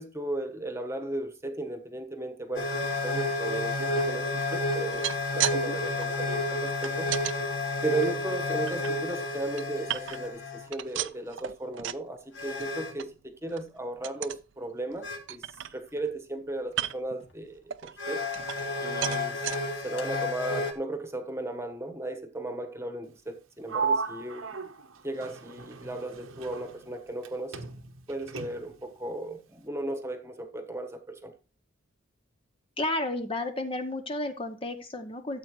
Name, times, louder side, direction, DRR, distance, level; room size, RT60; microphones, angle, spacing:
voice 1, 0.0-2.7 3.0-7.1 7.8-18.3 18.8-24.6 25.0-27.7 28.1-31.3, right 2 dB, 15° right, 1.2 m, -36 dB
sound 1, 2.6-10.7 12.4-13.0 15.0-15.2 17.2-17.3 18.0-20.7, left 2 dB, 60° left, 2.3 m, -31 dB
sound 2, 4.8-5.6 5.9-7.4 7.9-8.9 9.3-10.4 10.7-12.1 12.4-12.7 13.0-13.1 13.5-13.7 14.0-14.4 14.9-15.0 15.3-16.1 16.7-17.2 17.7-18.8 19.0-19.6 20.2-20.3 20.6-20.7, right 11 dB, 65° right, 0.5 m, -35 dB
Sliding door, 23.7-27.3 27.5-28.9, right 5 dB, 80° right, 1.1 m, -35 dB
voice 2, 32.8-35.4, left 2 dB, 25° left, 0.8 m, -32 dB
13.5 x 8.0 x 3.1 m
head